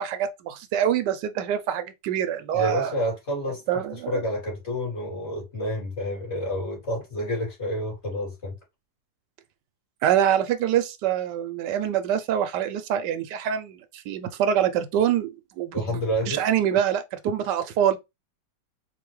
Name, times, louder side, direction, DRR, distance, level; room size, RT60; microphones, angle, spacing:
voice 1, 0.0-2.9 3.7-4.2 10.0-16.0 16.3-18.0, right 10 dB, 90° right, 1.3 m, -25 dB
voice 2, 2.5-8.5 15.7-16.4, equal, 40° left, 2.6 m, -29 dB
4.4 x 2.7 x 3.1 m
omnidirectional pair, 1.8 m